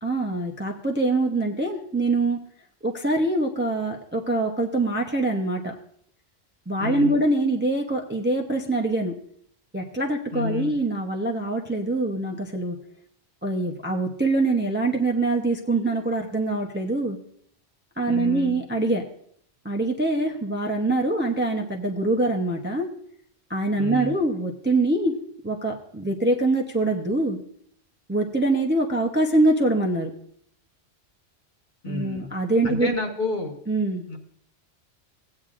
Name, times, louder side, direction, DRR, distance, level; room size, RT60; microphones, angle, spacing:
voice 1, 0.0-2.4 2.8-5.7 6.7-9.1 9.7-12.8 13.4-17.2 18.0-19.0 19.6-22.9 23.5-25.1 25.4-27.4 28.1-30.1 31.9-33.0 33.7-34.0, right 2 dB, 10° right, 1 dB, 0.6 m, -24 dB
voice 2, 6.8-7.1 10.3-10.7 18.1-18.6 23.8-24.1 31.8-32.3 32.6-33.5 34.1-34.2, left 3 dB, 45° left, 2 dB, 1.3 m, -30 dB
16.5 x 8.7 x 2.5 m, 0.67 s
omnidirectional pair, 1.1 m